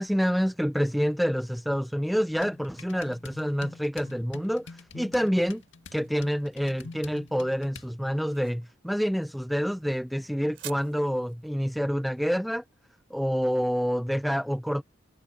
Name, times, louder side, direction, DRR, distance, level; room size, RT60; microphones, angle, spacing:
voice 1, 0.0-5.6 5.9-12.6 13.1-14.8, equal, ahead, 0.4 m, -27 dB
sound 1, 2.4-8.0, left 4 dB, 75° left, 2.1 m, -46 dB
sound 2, 5.5-14.1, right 11 dB, 75° right, 2.8 m, -51 dB
head